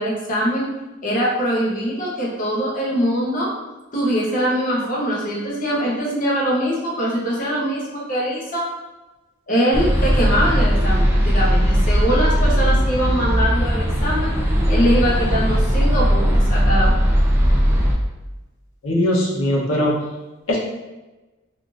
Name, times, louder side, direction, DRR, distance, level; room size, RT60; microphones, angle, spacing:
voice 1, 0.0-3.5 3.9-8.7 9.5-14.4 14.7-17.1, equal, 40° left, -5 dB, 0.7 m, -22 dB
sound 1, 9.7-18.0, equal, 10° right, 0.3 m, -18 dB
voice 2, 18.8-19.9 20.5-20.6, left 1 dB, 75° left, -3 dB, 0.7 m, -19 dB
3.6 x 2.4 x 2.4 m, 1.1 s
head